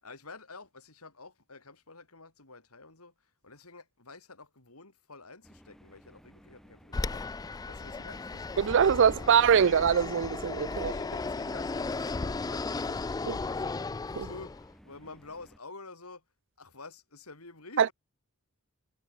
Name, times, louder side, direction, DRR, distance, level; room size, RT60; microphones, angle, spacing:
voice 1, 0.0-3.1 3.4-7.2 7.7-9.7 10.6-13.8 14.2-14.5 14.8-16.2 16.6-17.9, left 3 dB, 90° left, 5.9 m, -49 dB
sound 1, 5.4-15.6, equal, ahead, 6.4 m, -57 dB
Fixed-wing aircraft airplane, 6.9-14.7, left 3 dB, 15° left, 0.3 m, -35 dB
voice 2, 8.6-10.9 13.3-13.4 14.2-14.3 17.8-17.9, right 7 dB, 60° right, 0.4 m, -23 dB
head